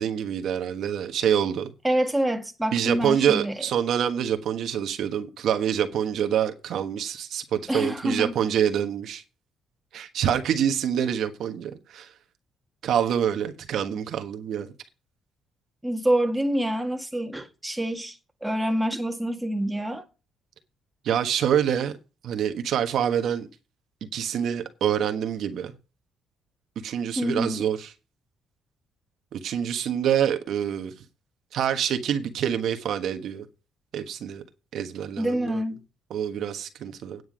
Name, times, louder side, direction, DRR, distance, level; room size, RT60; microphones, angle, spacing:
voice 1, 0.0-1.7 2.7-9.2 9.9-12.1 12.8-14.7 21.0-21.9 22.2-23.5 24.1-25.7 26.8-27.9 29.3-30.9 31.5-33.4 33.9-34.4 34.7-35.6 36.1-37.2, right 9 dB, 70° right, 1.3 m, -26 dB
voice 2, 1.8-3.6 7.7-8.4 15.8-20.0 27.2-27.6 35.2-35.8, right 1 dB, 5° right, 1.7 m, -26 dB
9.5 x 7.9 x 5.2 m
cardioid pair, 95°, 0 cm